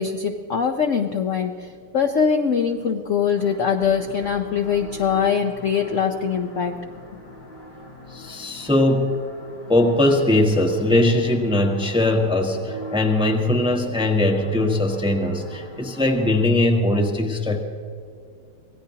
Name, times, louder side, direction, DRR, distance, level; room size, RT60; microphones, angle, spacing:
voice 1, 0.0-6.8, left 6 dB, 60° left, 4 dB, 0.8 m, -22 dB
sound 1, 3.3-16.5, left 1 dB, 80° left, 5.1 m, -42 dB
voice 2, 8.1-9.1 9.7-17.6, left 1 dB, 5° right, 2 dB, 0.9 m, -20 dB
25.5 x 17.5 x 2.9 m, 2.2 s
omnidirectional pair, 2.3 m